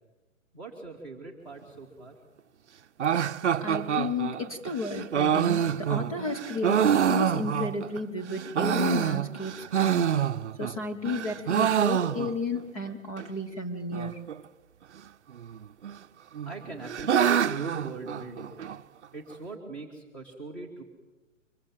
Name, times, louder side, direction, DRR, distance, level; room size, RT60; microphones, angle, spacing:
voice 1, 0.5-2.2 16.4-18.5 19.1-20.8, right 3 dB, 5° left, 0 dB, 1.4 m, -40 dB
sound 1, 3.0-8.0 8.4-10.8 11.0-12.6 12.9-13.0 13.2-13.3 13.9-14.3 15.4-16.0 16.3-18.8, right 8 dB, 60° right, 0.7 m, -26 dB
voice 2, 3.6-10.1 10.6-14.2, left 3 dB, 25° left, 4 dB, 1.3 m, -33 dB
24.5 x 21.0 x 7.4 m, 1.2 s
hypercardioid pair, 180°, 40 cm